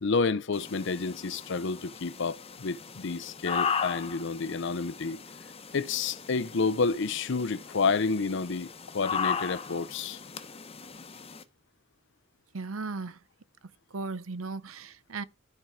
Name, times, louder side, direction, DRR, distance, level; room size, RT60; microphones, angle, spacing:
voice 1, 0.0-5.2 5.7-8.7 8.9-10.2, left 4 dB, 65° left, 0.6 m, -29 dB
sound 1, 0.5-11.4, left 6 dB, 30° left, 0.9 m, -37 dB
voice 2, 12.5-13.2 13.9-15.2, right 3 dB, 90° right, 0.8 m, -36 dB
13.0 x 4.6 x 4.9 m
head